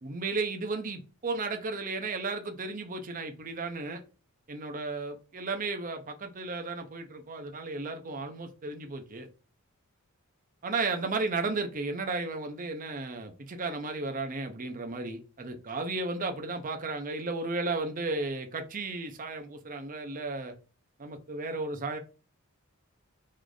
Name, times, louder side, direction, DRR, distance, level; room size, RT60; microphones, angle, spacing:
voice 1, 0.0-4.0 4.5-9.3 10.6-20.5 21.0-22.0, right 3 dB, 40° right, 0.6 m, -34 dB
3.2 x 2.5 x 3.8 m
head